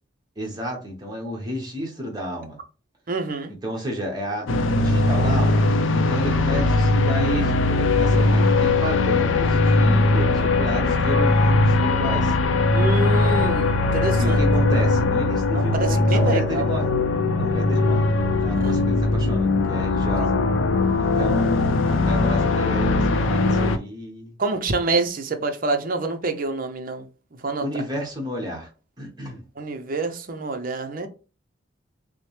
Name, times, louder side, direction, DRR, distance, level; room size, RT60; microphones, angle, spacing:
voice 1, 0.4-2.6 3.5-4.5 4.8-5.6 5.9-12.4 14.2-16.9 17.4-18.0 18.4-20.4 21.0-24.4 27.6-28.7 29.0-29.4, equal, 20° right, 1.2 m, -31 dB
voice 2, 3.1-3.5 12.7-14.4 15.5-16.7 18.6-18.7 20.2-20.3 24.4-27.1 27.4-27.7 29.6-31.1, right 3 dB, 45° right, 0.6 m, -26 dB
sound 1, 4.5-23.8, left 2 dB, 75° left, 0.5 m, -20 dB
6.1 x 2.1 x 3.1 m
head